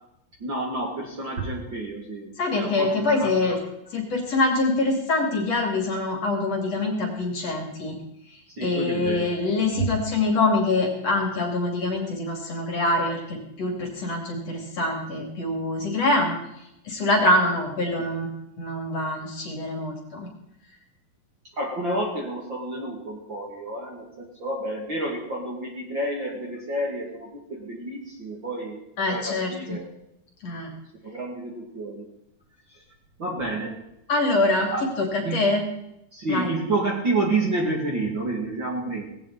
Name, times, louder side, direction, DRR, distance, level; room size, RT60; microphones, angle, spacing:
voice 1, 0.4-3.4 8.6-9.3 9.8-9.9 21.5-28.8 29.1-29.8 31.0-32.1 32.7-32.8 33.2-33.8 34.7-34.9 35.2-35.4 36.1-39.0, right 2 dB, 35° right, -2 dB, 2.6 m, -29 dB
voice 2, 2.4-3.6 3.9-8.0 8.6-16.4 16.9-18.3 18.6-20.3 29.0-29.8 30.4-30.7 34.1-35.1 35.3-35.6 36.3-36.5, left 2 dB, 45° left, 2 dB, 3.6 m, -24 dB
18.5 x 17.0 x 4.2 m, 0.83 s
omnidirectional pair, 4.4 m